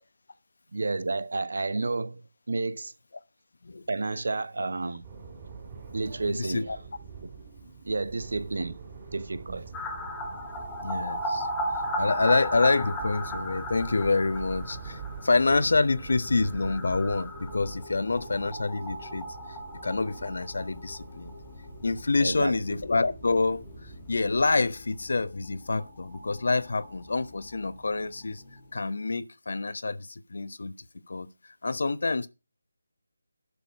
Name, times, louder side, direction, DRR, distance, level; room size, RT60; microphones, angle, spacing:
voice 1, 0.7-2.9 3.9-5.0 5.9-6.7 7.8-8.8 9.1-9.7 22.2-22.8, right 3 dB, 65° right, 1.1 m, -31 dB
sound 1, 5.0-24.5, right 5 dB, 25° right, 4.1 m, -45 dB
voice 2, 6.3-6.8 10.8-11.5 12.0-19.2 19.8-21.3 21.8-28.4 28.7-30.7 31.1-32.3, left 3 dB, 65° left, 1.0 m, -27 dB
sound 2, 9.7-21.3 21.6-21.7 22.0-22.1 25.1-25.2 25.4-25.5 25.8-27.6 27.9-28.0, equal, 10° left, 1.5 m, -36 dB
sound 3, 10.0-28.8, left 3 dB, 40° left, 1.6 m, -50 dB
11.5 x 6.7 x 5.3 m
figure-of-eight pair, 165°, 0 cm